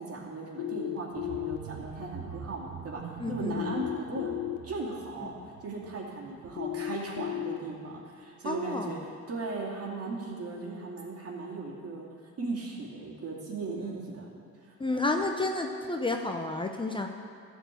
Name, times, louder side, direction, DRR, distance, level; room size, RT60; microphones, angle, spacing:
voice 1, 0.0-4.4 4.6-5.3 5.6-14.3 14.6-15.0, right 3 dB, 50° right, -2 dB, 2.5 m, -37 dB
sound 1, 0.6-1.6 3.6-4.6 6.6-7.6, left 13 dB, 85° left, 0.9 m, -34 dB
sound 2, 1.1-6.9 7.3-7.5 7.9-8.0, right 7 dB, 75° right, 0.8 m, -45 dB
voice 2, 3.2-3.7 8.4-8.9 14.8-17.1, left 2 dB, 15° left, 3 dB, 0.7 m, -31 dB
13.5 x 4.6 x 8.3 m, 2.3 s
cardioid pair, 90°, 30 cm